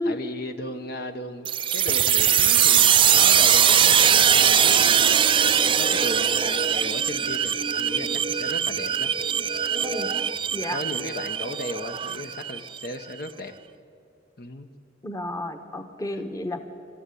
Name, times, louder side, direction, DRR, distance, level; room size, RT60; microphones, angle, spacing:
voice 1, 0.0-5.2 5.6-9.1 10.7-13.5 14.4-14.7, left 1 dB, 55° left, 7 dB, 1.0 m, -36 dB
sound 1, 1.4-12.9, right 8 dB, 30° right, 0.4 m, -21 dB
voice 2, 15.0-16.6, left 1 dB, 20° left, 7 dB, 1.1 m, -31 dB
28.5 x 13.5 x 8.4 m, 2.4 s
head